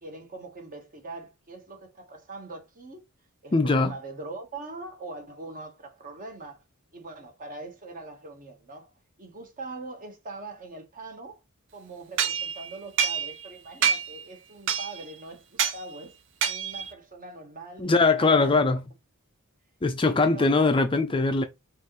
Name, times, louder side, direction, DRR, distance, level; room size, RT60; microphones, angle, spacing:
voice 1, 0.0-3.0 3.4-6.6 6.9-8.9 9.2-11.4 11.7-16.2 16.4-17.9 18.2-18.6 20.0-20.7, right 2 dB, 40° right, 1.1 m, -42 dB
voice 2, 3.5-3.9 17.8-18.8 19.8-21.4, left 3 dB, 25° left, 0.4 m, -21 dB
sound 1, 12.2-13.5 13.8-14.2 14.7-15.1 15.6-15.8 16.4-16.9, right 7 dB, 55° right, 0.6 m, -27 dB
5.3 x 2.5 x 3.0 m
head